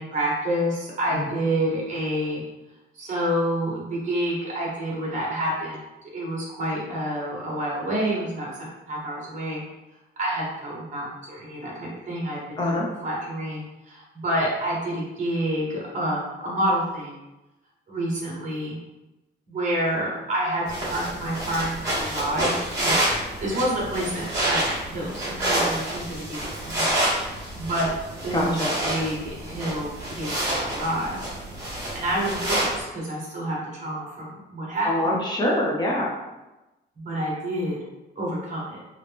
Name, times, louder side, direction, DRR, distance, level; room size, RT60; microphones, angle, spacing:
voice 1, 0.0-2.4 2.9-5.8 6.1-9.6 10.2-17.1 17.9-18.8 19.5-23.0 23.4-26.9 27.3-27.9 28.2-31.3 31.9-34.9 37.0-37.8 38.2-38.8, right 1 dB, 40° right, -4 dB, 1.1 m, -28 dB
sound 1, 20.7-32.8, right 1 dB, 15° right, 1.2 m, -28 dB
voice 2, 28.3-28.7 34.8-36.1, left 1 dB, 25° left, -3 dB, 0.5 m, -24 dB
2.9 x 2.8 x 3.4 m, 1.0 s
wide cardioid pair, 180°, 19 cm